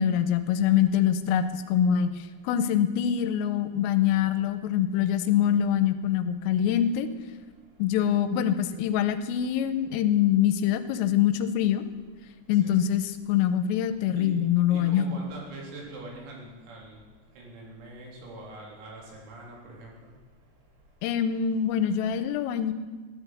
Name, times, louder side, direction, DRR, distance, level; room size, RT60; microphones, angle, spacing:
voice 1, 0.0-2.1 2.4-7.1 7.8-11.8 12.5-15.1 21.0-22.7, left 9 dB, 90° left, 11 dB, 3.4 m, -24 dB
voice 2, 14.7-17.0 17.4-19.9, right 2 dB, 85° right, -2 dB, 6.4 m, -43 dB
14.5 x 11.5 x 7.8 m, 1.4 s
omnidirectional pair, 5.9 m